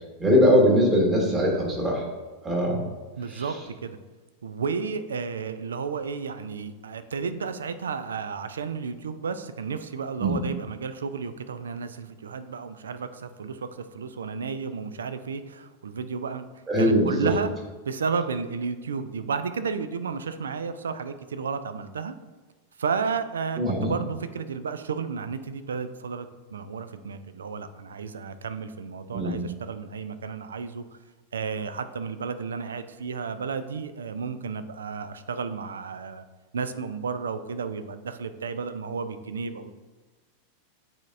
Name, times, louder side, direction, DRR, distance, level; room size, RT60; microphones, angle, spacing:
voice 1, 0.2-2.0 2.4-2.8 3.3-3.4 10.2-10.4 16.7-17.3 23.6-23.9 29.1-29.4, equal, 20° right, -1 dB, 1.6 m, -21 dB
voice 2, 3.2-4.0 4.4-16.5 16.8-17.5 17.9-22.1 22.8-30.8 31.3-36.2 36.5-39.7, right 5 dB, 70° right, 11 dB, 0.4 m, -32 dB
8.8 x 4.3 x 2.5 m, 1.3 s
figure-of-eight pair, 90°, 0 cm